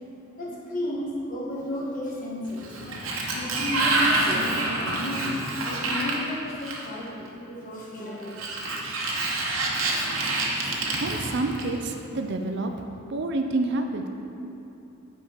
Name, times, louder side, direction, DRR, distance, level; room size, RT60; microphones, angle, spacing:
voice 1, 0.2-3.0 3.3-8.6, left 1 dB, 40° left, -4 dB, 1.4 m, -33 dB
Sliding door, 2.5-7.1 8.2-11.9, right 2 dB, 70° right, 1.0 m, -27 dB
voice 2, 11.0-12.7 13.1-14.1, right 2 dB, 55° right, 5 dB, 0.4 m, -28 dB
8.5 x 4.5 x 5.0 m, 2.8 s
head